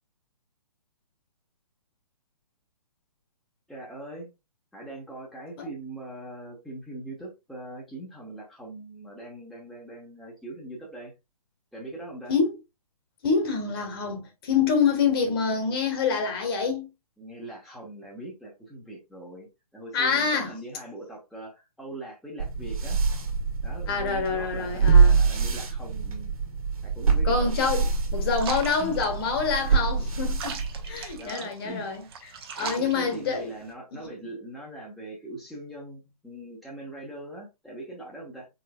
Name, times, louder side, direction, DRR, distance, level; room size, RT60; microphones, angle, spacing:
voice 1, 3.7-4.3 4.7-11.1 11.7-12.3 17.2-23.0 23.6-26.3 26.8-27.5 28.8-29.0 31.2-31.9 32.6-38.5, right 1 dB, ahead, 1.0 m, -41 dB
voice 2, 13.2-16.9 19.9-20.5 23.9-25.2 27.2-30.6 30.9-32.0 32.6-33.5 33.9-34.1, left 5 dB, 40° left, 1.4 m, -26 dB
sound 1, 22.4-31.3, right 5 dB, 65° right, 1.5 m, -25 dB
sound 2, 28.3-33.7, right 6 dB, 40° right, 1.0 m, -40 dB
4.4 x 4.1 x 2.3 m
figure-of-eight pair, 135°, 20 cm